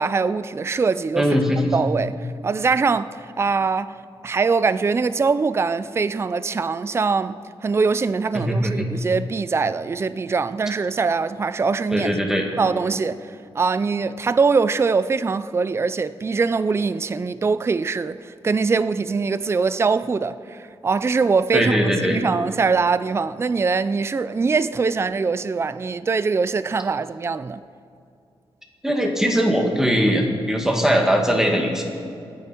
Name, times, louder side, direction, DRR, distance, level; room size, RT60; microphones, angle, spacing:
voice 1, 0.0-1.3 1.7-12.1 12.6-21.8 22.1-27.6, right 4 dB, 25° right, 0.4 m, -22 dB
voice 2, 1.2-1.7 8.4-8.8 11.9-12.4 21.5-22.2 28.8-31.8, equal, 5° right, 2.1 m, -20 dB
27.0 x 9.4 x 4.5 m
wide cardioid pair, 120°, 10 cm